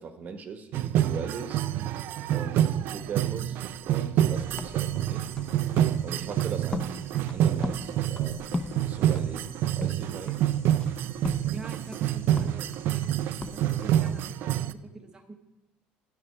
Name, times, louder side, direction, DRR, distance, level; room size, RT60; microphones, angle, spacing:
voice 1, 0.0-1.6 2.3-3.6 3.9-5.3 6.0-6.9 7.3-8.6 8.9-10.4, right 5 dB, 45° right, 8 dB, 1.0 m, -39 dB
sound 1, 0.7-14.7, right 11 dB, 65° right, 0.3 m, -27 dB
sound 2, 1.5-11.3, right 1 dB, 55° left, 3.0 m, -56 dB
sound 3, 4.3-14.3, left 2 dB, 20° left, 0.7 m, -39 dB
voice 2, 11.5-13.2 13.5-15.3, right 3 dB, 20° right, 2 dB, 0.8 m, -45 dB
9.6 x 6.9 x 5.4 m, 0.96 s
cardioid pair, 105°, 4 cm